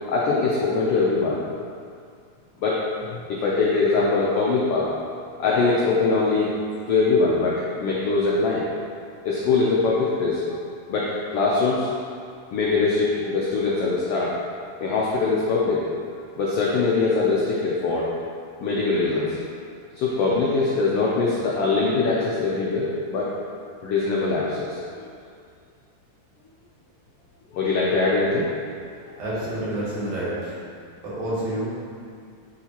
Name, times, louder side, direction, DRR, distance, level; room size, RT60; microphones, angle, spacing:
voice 1, 0.1-1.4 2.6-4.9 5.4-6.5 6.9-8.6 9.2-10.6 10.9-11.9 12.5-14.3 14.8-15.8 16.4-18.1 18.6-19.4 20.0-23.3 23.8-24.8 27.5-28.5 29.0-29.2, left 3 dB, 80° left, -5 dB, 1.3 m, -22 dB
voice 2, 29.2-30.6 31.0-31.7, right 1 dB, 80° right, -9 dB, 3.1 m, -28 dB
9.6 x 3.8 x 2.9 m, 2.3 s
omnidirectional pair, 3.5 m